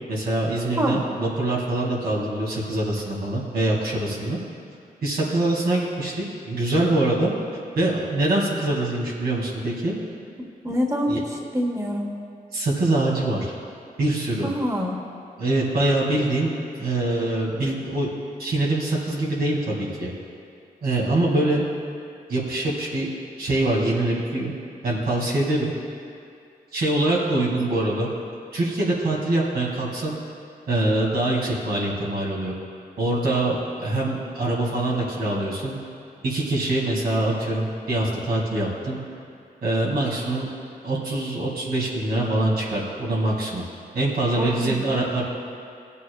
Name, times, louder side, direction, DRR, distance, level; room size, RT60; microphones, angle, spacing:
voice 1, 0.1-4.4 5.0-7.3 7.8-10.0 11.1-11.2 12.5-13.5 14.0-14.5 15.4-16.5 16.8-18.1 18.4-20.1 20.8-21.7 22.3-23.1 23.4-24.5 24.8-25.7 26.7-28.1 28.5-30.2 30.7-32.5 33.0-35.8 36.2-39.0 39.6-40.5 40.8-43.6 43.9-45.2, right 2 dB, 85° right, -5 dB, 2.4 m, -24 dB
voice 2, 10.6-11.2 11.5-12.1 14.4-15.0 44.4-44.8, equal, 20° right, -1 dB, 1.5 m, -25 dB
18.5 x 8.3 x 2.4 m, 2.4 s
cardioid pair, 60°, 16 cm